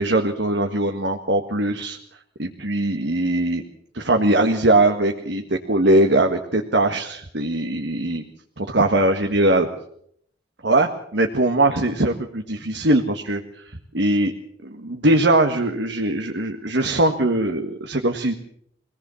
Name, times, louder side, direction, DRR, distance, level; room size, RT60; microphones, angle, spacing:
voice 1, 0.0-2.0 2.4-3.6 3.9-8.2 8.6-9.7 10.6-13.4 13.9-14.3 14.6-18.3, right 1 dB, 70° right, 5 dB, 1.7 m, -21 dB
24.5 x 18.0 x 7.1 m, 0.68 s
head